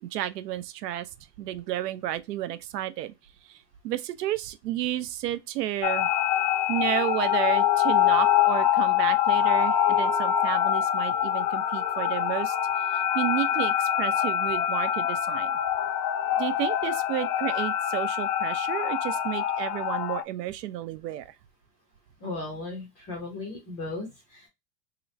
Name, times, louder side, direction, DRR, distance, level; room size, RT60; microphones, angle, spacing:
voice 1, 0.0-1.1 1.4-3.1 3.5-3.6 3.8-6.1 6.7-15.5 16.4-21.3, right 13 dB, 80° right, 0.6 m, -32 dB
sound 1, 5.8-20.2, left 10 dB, 85° left, 0.6 m, -25 dB
voice 2, 22.2-24.5, left 2 dB, 15° left, 0.4 m, -36 dB
2.9 x 2.5 x 3.1 m
supercardioid pair, 165°, 48 cm